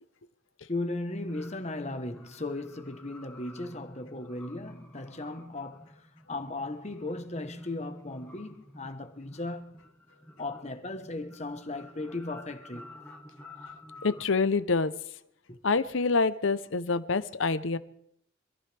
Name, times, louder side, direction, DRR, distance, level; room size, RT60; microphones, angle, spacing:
voice 1, 0.7-9.8 10.4-13.0 15.5-15.6, left 2 dB, 35° left, 1.1 m, -37 dB
sound 1, 1.3-14.2, left 1 dB, 10° left, 1.7 m, -51 dB
voice 2, 14.0-14.9 15.6-17.8, left 4 dB, 80° left, 0.8 m, -26 dB
26.0 x 15.0 x 3.5 m
head